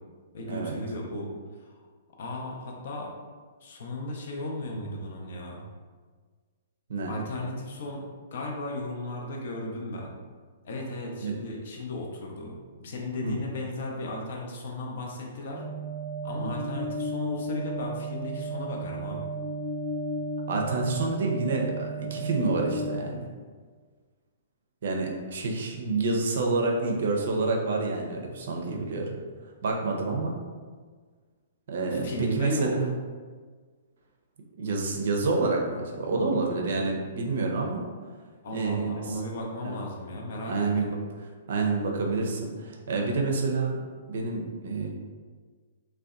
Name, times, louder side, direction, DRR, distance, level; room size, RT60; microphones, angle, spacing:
voice 1, 0.3-1.3 1.7-1.8 2.2-3.1 3.6-5.6 7.1-8.0 8.3-10.1 10.6-12.5 12.8-15.6 16.2-19.3 31.9-32.7 38.4-40.9, left 1 dB, 55° left, 0 dB, 0.5 m, -35 dB
sound 1, 15.5-23.0, right 1 dB, 10° right, 0.7 m, -34 dB
voice 2, 20.5-23.3 24.8-29.2 29.6-30.4 31.7-32.9 34.6-37.8 38.5-38.9 39.6-39.8 40.5-41.0 41.5-43.8 44.1-44.9, right 3 dB, 60° right, 0 dB, 0.4 m, -28 dB
2.6 x 2.1 x 2.3 m, 1.5 s
figure-of-eight pair, 115°, 0 cm